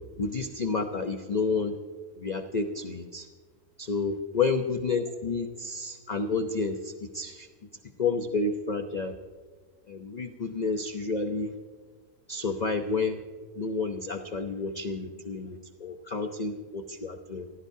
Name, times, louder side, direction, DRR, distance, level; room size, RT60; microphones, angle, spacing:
voice 1, 0.2-1.8 2.2-3.3 3.8-7.5 8.0-9.1 9.9-11.5 12.3-13.2 13.6-17.5, left 4 dB, 35° left, 6 dB, 0.8 m, -30 dB
24.0 x 16.5 x 2.8 m, 1.5 s
omnidirectional pair, 1.7 m